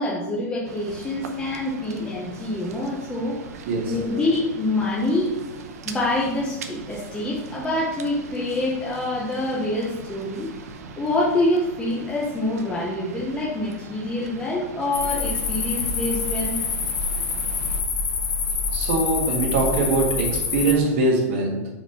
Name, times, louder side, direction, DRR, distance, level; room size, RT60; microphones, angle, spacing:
voice 1, 0.0-3.4 3.8-5.3 5.8-10.5 11.0-16.6, left 2 dB, 10° left, -5 dB, 0.8 m, -26 dB
sound 1, 0.6-17.8, right 5 dB, 80° right, 0.8 m, -40 dB
voice 2, 3.7-4.0 18.7-21.7, right 2 dB, 50° right, -3 dB, 1.8 m, -22 dB
sound 2, 14.9-20.7, left 5 dB, 70° left, 1.3 m, -26 dB
4.9 x 4.1 x 5.5 m, 0.96 s
supercardioid pair, 170°, 8 cm